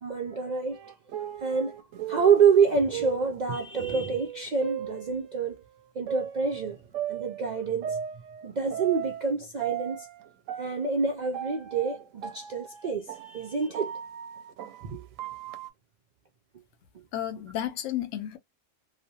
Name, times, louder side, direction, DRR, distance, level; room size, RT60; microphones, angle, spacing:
voice 1, 0.0-0.8 1.4-1.8 2.1-5.6 5.9-6.8 7.1-8.0 8.4-10.1 10.6-13.9 14.8-15.1, right 5 dB, 65° right, 0.4 m, -27 dB
sound 1, 0.7-5.5 6.1-9.3 9.6-15.7, right 10 dB, 85° right, 1.0 m, -37 dB
voice 2, 17.1-18.4, left 12 dB, 75° left, 1.0 m, -32 dB
3.0 x 2.1 x 2.7 m
omnidirectional pair, 1.3 m